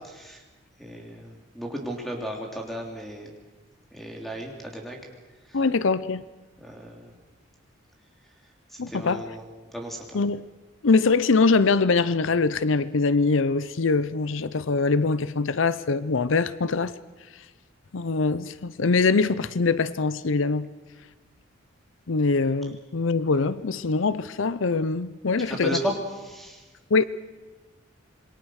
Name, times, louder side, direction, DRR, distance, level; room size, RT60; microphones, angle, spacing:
voice 1, 0.8-3.3 3.9-5.0 6.6-7.1 8.9-9.4 9.7-10.1 25.5-26.0 26.2-26.6, right 1 dB, ahead, 3.3 m, -34 dB
voice 2, 5.5-6.2 8.8-9.3 10.1-10.4 10.8-16.9 17.9-20.7 22.1-25.8 26.9-27.0, left 4 dB, 70° left, 0.6 m, -23 dB
27.0 x 22.0 x 6.4 m
head